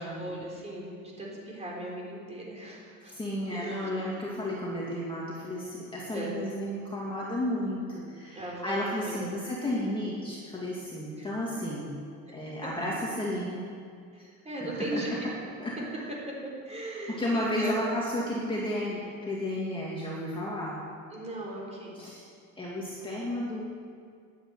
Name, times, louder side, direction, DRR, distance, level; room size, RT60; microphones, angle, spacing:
voice 1, 0.0-3.1 3.5-3.9 6.1-6.4 8.3-8.8 9.1-9.3 11.2-11.3 12.3-12.4 14.1-15.3 16.3-17.9 21.1-22.0, right 1 dB, 20° right, -3 dB, 4.0 m, -37 dB
voice 2, 3.1-11.9 12.3-13.6 14.7-15.2 15.6-16.1 17.1-20.8 21.9-22.3 22.6-23.6, left 1 dB, 15° left, -5 dB, 2.1 m, -33 dB
10.0 x 10.0 x 8.9 m, 2.2 s
cardioid pair, 145°, 34 cm